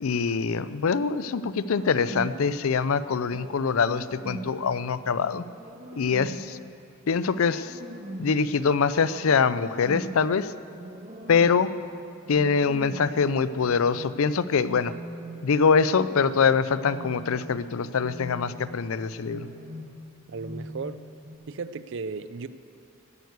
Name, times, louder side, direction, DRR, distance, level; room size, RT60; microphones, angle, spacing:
voice 1, 0.0-5.4 6.0-6.6 7.1-7.8 8.2-10.5 11.3-11.8 12.3-14.9 15.4-19.5, left 5 dB, 70° left, 15 dB, 0.5 m, -24 dB
sound 1, 1.7-2.5 3.3-4.6 5.3-6.6 7.1-8.5 9.0-10.3 10.7-11.8 12.2-13.3 13.7-14.2 14.7-15.6 15.9-16.4 16.8-17.5 18.0-18.8 19.2-20.1 20.4-20.9 21.2-21.4, right 1 dB, 30° right, 1.4 m, -41 dB
voice 2, 20.3-21.0 21.5-22.5, right 4 dB, 55° right, 14 dB, 0.5 m, -35 dB
15.5 x 9.3 x 8.1 m, 2.6 s
head